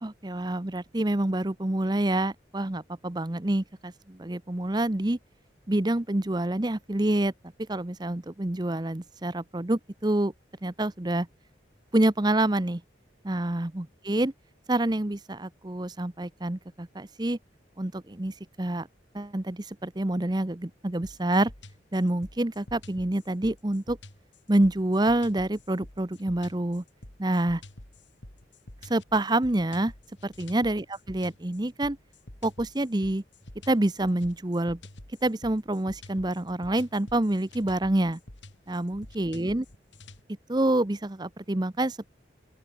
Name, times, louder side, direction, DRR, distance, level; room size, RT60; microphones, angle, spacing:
voice 1, 0.0-5.2 5.7-7.3 7.7-10.3 10.6-11.3 11.9-12.8 13.2-14.3 14.7-17.4 17.8-18.9 19.1-21.5 21.9-24.0 24.5-26.8 27.2-27.6 28.8-29.9 30.2-32.0 32.4-33.2 33.7-34.8 35.2-38.2 38.7-39.6 40.5-42.1, right 1 dB, 25° right, 0.8 m, -27 dB
sound 1, 21.0-40.2, left 1 dB, 90° left, 3.8 m, -48 dB
open air
head